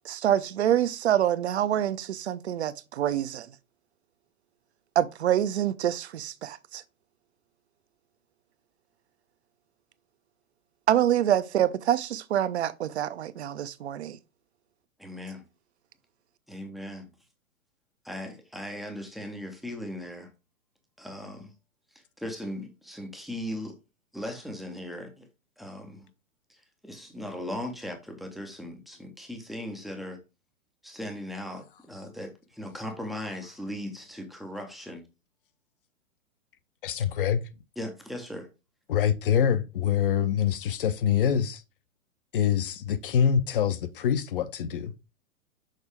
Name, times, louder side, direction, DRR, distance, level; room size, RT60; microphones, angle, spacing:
voice 1, 0.0-3.5 5.0-6.8 10.9-14.2, right 11 dB, 55° right, 0.6 m, -26 dB
voice 2, 15.0-15.4 16.5-17.1 18.0-20.3 21.0-21.5 22.2-23.8 24.1-25.2 25.6-26.1 26.5-26.6 26.8-30.2 30.8-35.0 37.8-38.5, left 1 dB, ahead, 0.5 m, -38 dB
voice 3, 36.8-37.4 38.9-41.6 42.3-44.9, left 8 dB, 40° left, 0.6 m, -25 dB
6.5 x 4.2 x 3.4 m
figure-of-eight pair, 115°, 41 cm